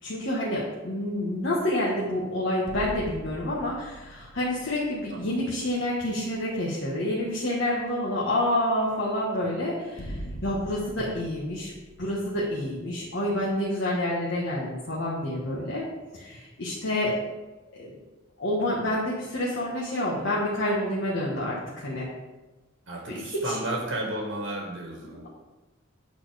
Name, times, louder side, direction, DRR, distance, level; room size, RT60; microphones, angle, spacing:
voice 1, 0.0-10.1 10.4-11.7 12.0-15.9 16.1-17.1 17.7-17.9 18.4-22.1 23.1-23.6 25.0-25.3, left 1 dB, 65° left, -6 dB, 1.3 m, -28 dB
sound 1, 2.7-6.2 6.5-6.6 10.0-13.6, right 1 dB, 85° left, 1.1 m, -42 dB
voice 2, 5.1-5.4 11.0-11.2 17.0-17.2 22.9-25.3, right 1 dB, 75° right, 0 dB, 1.4 m, -33 dB
8.8 x 4.2 x 4.9 m, 1.2 s
head